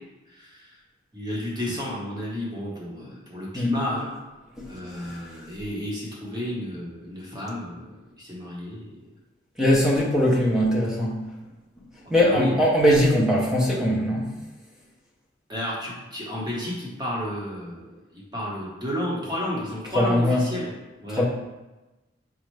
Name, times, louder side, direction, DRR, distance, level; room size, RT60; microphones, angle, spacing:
voice 1, 0.3-0.8 1.1-4.1 4.6-8.9 12.0-12.6 15.5-20.7 21.0-21.2, left 1 dB, 20° right, -6 dB, 1.2 m, -32 dB
voice 2, 4.6-5.4 9.6-11.3 12.1-14.4 19.9-20.5 21.1-21.2, equal, 5° right, -4 dB, 0.6 m, -21 dB
5.2 x 2.4 x 3.2 m, 1.1 s
head